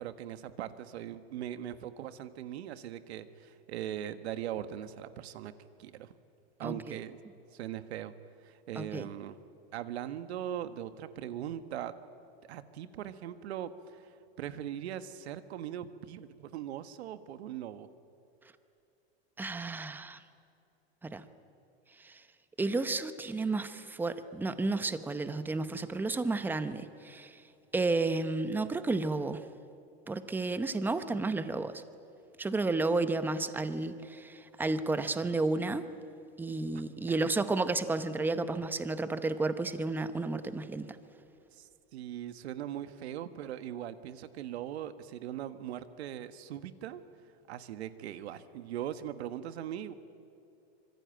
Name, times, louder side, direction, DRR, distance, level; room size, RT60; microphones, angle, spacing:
voice 1, 0.0-5.5 5.8-6.1 6.6-7.2 7.5-8.1 8.4-9.4 9.7-12.0 12.4-17.9 36.7-36.8 41.5-47.0 47.5-49.9, right 11 dB, 80° right, 11 dB, 1.6 m, -40 dB
voice 2, 6.6-6.9 8.8-9.1 19.4-20.2 21.0-21.2 22.0-22.2 22.6-27.4 27.7-29.4 30.1-31.8 32.4-35.9 36.4-41.0, right 3 dB, 5° right, 11 dB, 0.8 m, -32 dB
25.5 x 23.5 x 9.2 m, 2.8 s
supercardioid pair, 155°, 32 cm